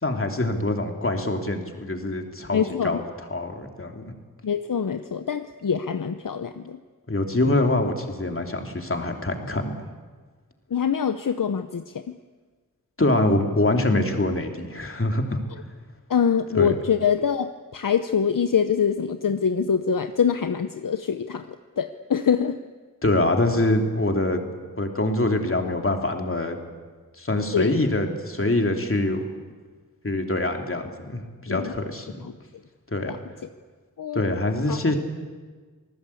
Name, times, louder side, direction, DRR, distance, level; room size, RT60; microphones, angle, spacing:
voice 1, 0.0-3.0 3.3-4.0 7.1-9.7 13.0-15.4 16.5-16.7 23.0-24.5 24.8-26.6 27.2-29.2 30.0-32.2 32.9-33.1 34.1-35.0, left 2 dB, 40° left, 4 dB, 2.9 m, -24 dB
voice 2, 2.5-3.0 4.4-6.8 10.7-12.0 16.1-21.5 21.8-22.6 27.5-27.7 31.5-31.7 33.1-33.2 34.0-34.3 34.7-34.8, left 7 dB, 65° left, 9 dB, 0.8 m, -24 dB
27.0 x 19.0 x 8.5 m, 1.4 s
wide cardioid pair, 90°, 35 cm